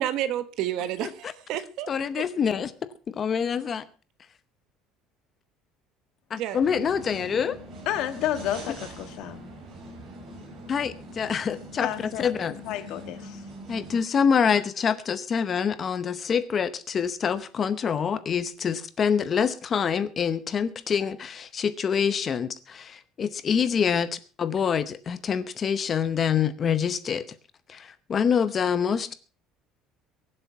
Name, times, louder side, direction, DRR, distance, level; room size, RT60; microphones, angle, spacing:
voice 1, 0.0-1.9 6.3-6.6, right 11 dB, 55° right, 13 dB, 1.3 m, -30 dB
voice 2, 1.9-2.7 3.1-3.8 6.3-7.6 10.7-11.9 12.2-12.6 13.7-27.3 27.7-29.1, left 7 dB, 25° left, 13 dB, 0.8 m, -26 dB
sound 1, 6.6-14.0, right 1 dB, 40° right, 5.0 m, -43 dB
voice 3, 7.9-9.5 11.8-12.3 12.7-13.4, left 12 dB, 55° left, 12 dB, 1.5 m, -30 dB
23.0 x 7.7 x 5.5 m, 0.35 s
cardioid pair, 180°, 0 cm